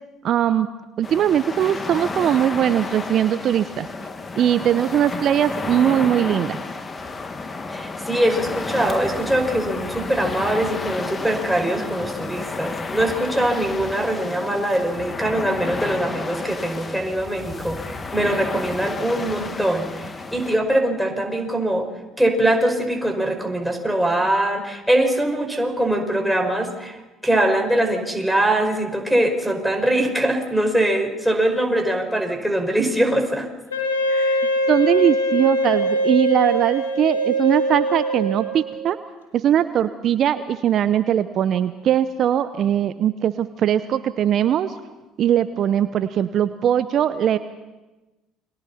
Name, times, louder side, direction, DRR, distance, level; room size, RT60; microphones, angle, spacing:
voice 1, 0.2-0.7 1.0-3.9 4.4-6.6 34.7-39.0 39.3-44.7 45.2-47.4, right 10 dB, 55° right, 13 dB, 0.7 m, -20 dB
sound 1, 1.0-20.6, left 3 dB, 30° left, 2.1 m, -31 dB
voice 2, 7.7-21.9 22.2-27.0 27.2-33.5 34.1-34.4, right 1 dB, ahead, 1 dB, 5.6 m, -22 dB
Wind instrument woodwind instrument, 33.7-38.8, right 1 dB, 90° left, 3.4 m, -22 dB
29.5 x 23.5 x 4.3 m, 1.1 s
hypercardioid pair, 55°, 0 cm